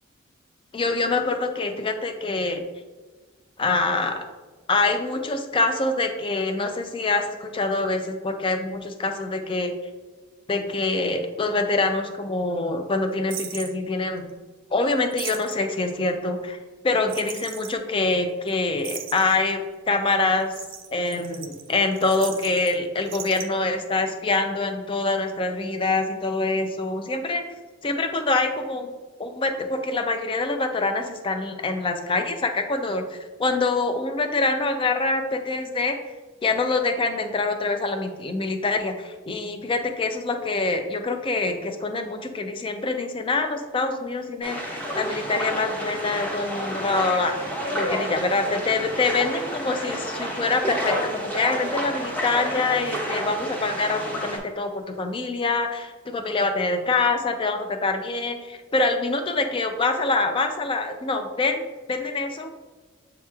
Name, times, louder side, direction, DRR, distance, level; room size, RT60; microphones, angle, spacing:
voice 1, 0.7-2.6 3.6-4.3 4.7-9.7 10.5-14.3 14.7-16.6 16.8-20.5 20.9-27.4 27.8-28.9 29.2-36.0 36.4-47.3 47.7-61.6 61.9-62.5, left 3 dB, 25° left, 6 dB, 0.4 m, -25 dB
sound 1, 13.3-13.7 15.0-15.7 17.1-17.7 18.1-18.2 18.5-18.6 18.8-19.5 20.4-22.7 23.0-23.4, right 9 dB, 45° right, 0.4 m, -37 dB
sound 2, 44.4-54.4, equal, 10° left, 0.7 m, -30 dB
7.3 x 2.9 x 2.3 m, 1.3 s
head